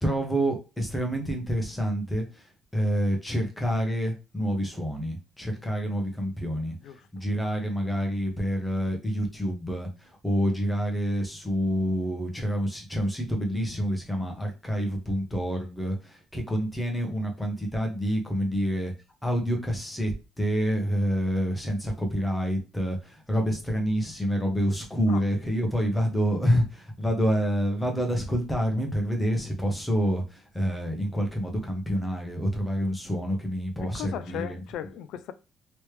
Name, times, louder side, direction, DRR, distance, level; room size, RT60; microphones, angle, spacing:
voice 1, 0.0-2.5 2.7-6.8 7.1-18.9 19.2-34.6, equal, 10° left, 0.9 m, -27 dB
voice 2, 33.8-35.3, left 10 dB, 75° left, 0.4 m, -37 dB
3.1 x 3.1 x 3.2 m
cardioid pair, 160°, 0 cm